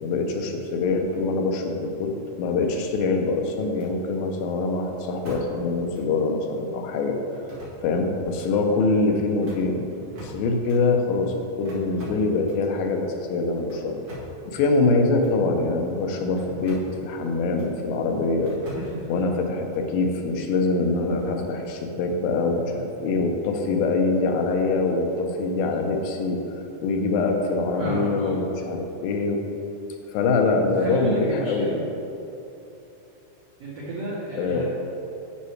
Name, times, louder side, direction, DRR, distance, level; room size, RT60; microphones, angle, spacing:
voice 1, 0.0-7.2 7.8-9.9 10.2-14.0 14.5-18.6 19.1-29.4 30.1-31.8 34.4-34.6, left 3 dB, 90° left, 3 dB, 2.5 m, -24 dB
sound 1, 2.7-3.2 3.7-3.9 5.2-5.7 5.9-6.0 7.3-8.0 8.3-8.5 9.3-10.8 11.6-12.7 13.6-14.4 15.1-15.4 16.3-17.0 17.5-17.7 18.4-19.2, right 1 dB, 45° right, 1.8 m, -43 dB
voice 2, 18.7-19.2 27.8-28.4 30.8-31.8 33.6-34.6, right 2 dB, 80° right, -6 dB, 1.3 m, -31 dB
10.0 x 5.6 x 3.2 m, 2.9 s
omnidirectional pair, 4.1 m